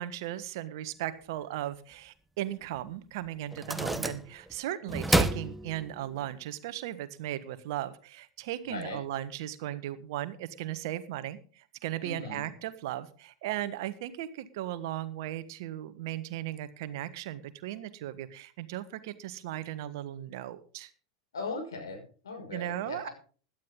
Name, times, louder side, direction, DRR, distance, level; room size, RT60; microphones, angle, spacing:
voice 1, 0.0-20.9 22.5-23.1, right 13 dB, 60° right, 12 dB, 1.4 m, -37 dB
sound 1, 2.8-2.9 3.5-4.6 4.9-6.2, right 1 dB, 5° right, 1.1 m, -29 dB
voice 2, 3.7-4.2 8.6-9.0 12.0-12.4 21.3-23.1, left 3 dB, 80° left, 4 dB, 5.8 m, -39 dB
17.0 x 12.0 x 3.7 m, 0.39 s
figure-of-eight pair, 90°, 2 cm